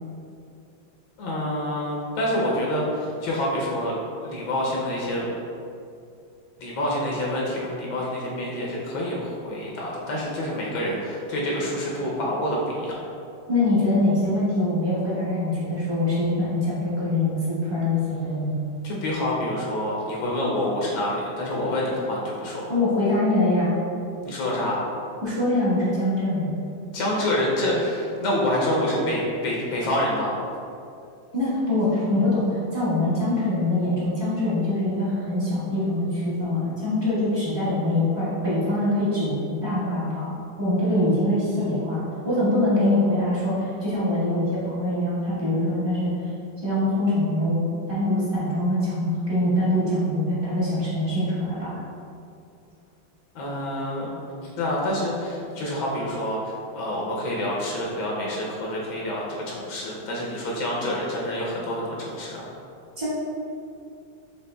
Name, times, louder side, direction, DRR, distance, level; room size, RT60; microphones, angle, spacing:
voice 1, 1.2-4.0 4.2-5.3 6.6-13.0 18.8-22.7 24.2-24.8 26.9-30.3 53.3-62.5, left 1 dB, 75° left, -4 dB, 1.5 m, -27 dB
voice 2, 13.5-18.6 22.7-23.7 25.2-26.5 31.3-39.3 39.6-46.1 46.6-47.6 47.9-51.7 63.0-63.1, left 1 dB, 15° right, -10 dB, 0.9 m, -23 dB
6.9 x 3.0 x 2.2 m, 2.5 s
omnidirectional pair, 2.2 m